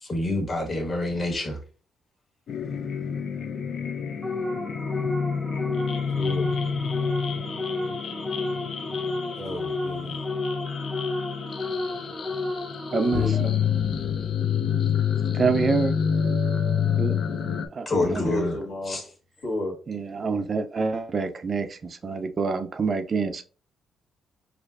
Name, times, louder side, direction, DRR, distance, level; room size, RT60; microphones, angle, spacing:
voice 1, 0.0-1.6 17.8-18.6 18.9-19.0, left 2 dB, 35° left, 1 dB, 1.4 m, -27 dB
sound 1, 2.5-17.7, left 7 dB, 55° left, 0.4 m, -28 dB
sound 2, 4.2-13.6, left 2 dB, 5° right, 0.8 m, -32 dB
voice 2, 6.1-6.5 9.4-10.2 13.0-13.7 18.2-19.0 19.4-19.8, left 1 dB, 85° left, -3 dB, 1.8 m, -31 dB
voice 3, 12.9-13.3 15.3-15.9 17.0-17.2 17.7-18.2 19.9-23.4, right 4 dB, 40° right, 8 dB, 0.4 m, -26 dB
4.4 x 2.5 x 2.4 m, 0.37 s
cardioid pair, 90°, 0 cm